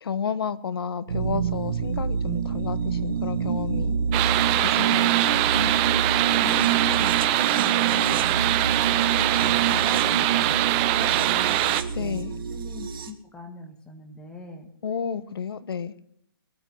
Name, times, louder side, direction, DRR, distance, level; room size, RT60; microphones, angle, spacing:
voice 1, 0.0-4.0 4.6-5.2 5.5-5.7 11.9-12.3 14.8-15.9, left 7 dB, 80° left, 16 dB, 1.1 m, -31 dB
sound 1, 1.1-13.1, right 7 dB, 70° right, 2.1 m, -27 dB
sound 2, 4.1-11.8, right 15 dB, 25° right, 0.6 m, -23 dB
voice 2, 6.4-7.1 7.5-8.3 9.2-10.6 10.8-14.7, equal, 10° left, 5 dB, 1.5 m, -40 dB
20.5 x 8.9 x 6.0 m, 0.71 s
hypercardioid pair, 160°, 12 cm